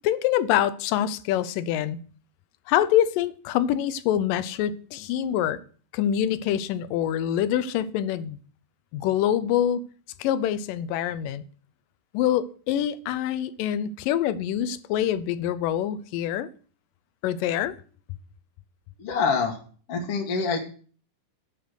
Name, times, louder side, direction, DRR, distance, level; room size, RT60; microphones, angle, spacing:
voice 1, 0.0-2.0 2.7-5.6 5.9-8.4 8.9-9.8 10.2-11.4 12.1-16.5 17.2-17.7, left 11 dB, 90° left, 2.3 m, -25 dB
voice 2, 19.0-19.6 19.9-20.6, left 5 dB, 55° left, 1.9 m, -25 dB
10.0 x 5.8 x 6.4 m
omnidirectional pair, 3.8 m